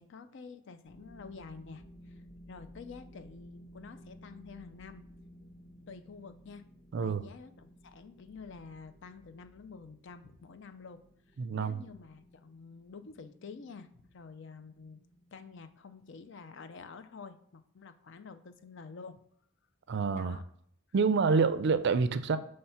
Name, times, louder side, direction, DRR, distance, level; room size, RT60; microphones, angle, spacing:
voice 1, 0.0-2.2 2.5-5.0 5.9-6.6 7.0-11.0 11.3-15.0 15.3-19.2 20.1-20.4 21.2-21.5, left 5 dB, 55° left, 0.5 m, -49 dB
sound 1, 0.9-17.4, equal, 20° left, 1.7 m, -56 dB
voice 2, 6.9-7.2 11.4-11.8 19.9-20.4 20.9-22.4, right 5 dB, 55° right, 0.4 m, -27 dB
5.7 x 3.2 x 5.6 m
head